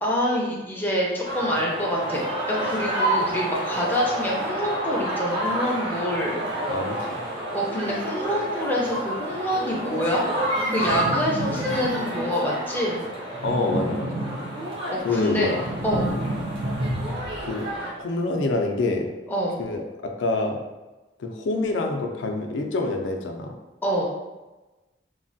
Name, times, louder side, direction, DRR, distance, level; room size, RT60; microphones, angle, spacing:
voice 1, 0.0-6.4 7.5-10.2 10.7-13.0 14.9-15.5 15.8-16.1 19.3-19.6 23.8-24.1, equal, 10° left, -4 dB, 0.4 m, -26 dB
sound 1, 1.2-17.9, right 1 dB, 25° right, 0.7 m, -29 dB
sound 2, 10.8-12.3 13.3-14.8 15.2-17.6, right 1 dB, 70° right, 0.5 m, -30 dB
voice 2, 13.4-14.1 15.0-15.6 17.5-17.7 18.0-19.1 19.6-20.6 21.2-23.5, left 2 dB, 90° left, 3 dB, 0.4 m, -26 dB
3.1 x 2.1 x 2.6 m, 1.1 s
head